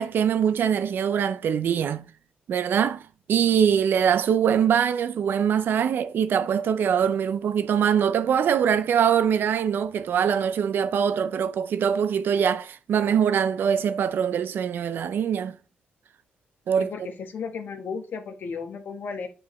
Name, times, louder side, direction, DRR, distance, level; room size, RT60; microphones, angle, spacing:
voice 1, 0.0-2.1 2.5-15.6 16.7-16.9, right 8 dB, 65° right, 0.5 m, -23 dB
voice 2, 16.8-19.3, left 5 dB, 60° left, 1.3 m, -34 dB
8.3 x 4.7 x 3.1 m
cardioid pair, 100°, 4 cm